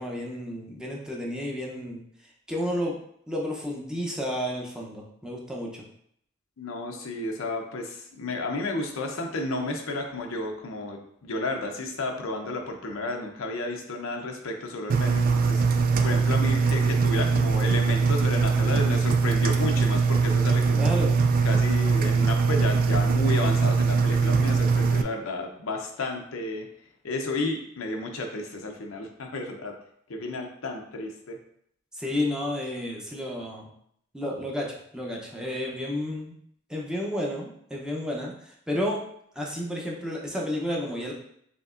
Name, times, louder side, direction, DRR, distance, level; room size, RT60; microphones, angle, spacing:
voice 1, 0.0-2.0 2.5-2.9 3.3-5.8 20.7-21.2 31.9-33.7 34.1-36.4 36.7-39.0 39.4-41.1, left 1 dB, 5° right, -2 dB, 0.6 m, -31 dB
voice 2, 6.6-15.6 16.0-20.9 21.4-26.7 27.0-29.8 30.1-31.4, left 2 dB, 80° left, 3 dB, 0.6 m, -32 dB
Engine, 14.9-25.0, right 4 dB, 45° right, 0.3 m, -22 dB
5.1 x 2.8 x 2.5 m, 0.69 s
head